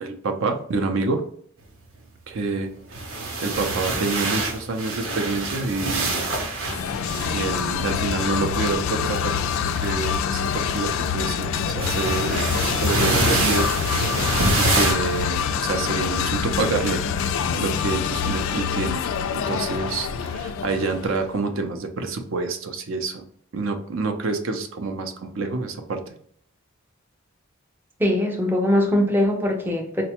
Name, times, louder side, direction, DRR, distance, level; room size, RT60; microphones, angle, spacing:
voice 1, 0.0-1.2 2.3-3.0 3.4-6.2 7.2-9.5 9.8-12.4 12.8-13.7 14.2-19.0 19.5-23.2 23.5-26.0, right 3 dB, 65° right, 6 dB, 0.5 m, -27 dB
sound 1, 2.8-7.8 9.6-9.9 11.8-14.9, right 2 dB, 90° right, 0.8 m, -25 dB
sound 2, 6.6-21.3, left 7 dB, 70° left, 0.3 m, -26 dB
voice 2, 28.0-30.0, left 1 dB, 10° right, 1 dB, 0.4 m, -21 dB
4.0 x 2.2 x 2.8 m, 0.62 s
head